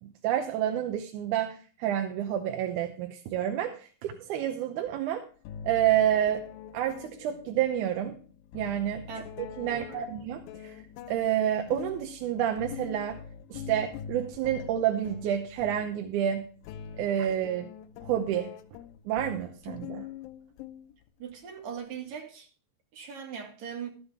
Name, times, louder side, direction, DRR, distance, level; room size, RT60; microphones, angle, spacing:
voice 1, 0.0-5.2 5.6-6.4 6.7-8.2 8.5-9.0 9.6-10.8 11.1-13.2 13.5-16.5 17.0-17.7 18.0-18.5 19.1-20.1, right 10 dB, 70° right, 2.0 m, -29 dB
sound 1, 4.9-5.0 5.4-21.3, left 8 dB, 80° left, 2.3 m, -44 dB
voice 2, 9.7-10.1 21.2-22.5 22.9-23.9, right 7 dB, 55° right, 3.3 m, -40 dB
13.5 x 9.6 x 3.6 m
omnidirectional pair, 4.2 m